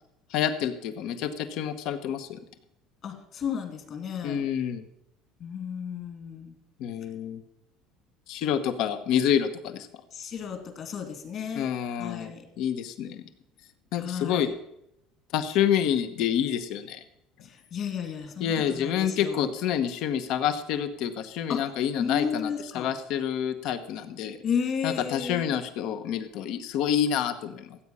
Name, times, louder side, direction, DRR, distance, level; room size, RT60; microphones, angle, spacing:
voice 1, 0.3-2.4 4.2-4.9 6.8-7.4 8.3-9.9 11.5-13.2 13.9-14.5 15.3-17.0 18.4-24.4 24.8-27.8, left 9 dB, 65° left, 10 dB, 1.0 m, -28 dB
voice 2, 3.0-4.4 5.4-6.6 10.1-12.5 14.0-14.5 17.4-19.5 21.5-21.7 22.0-22.9 24.4-25.5, left 7 dB, 45° left, 5 dB, 2.5 m, -33 dB
14.5 x 8.4 x 5.5 m, 0.80 s
cardioid pair, 130°, 0 cm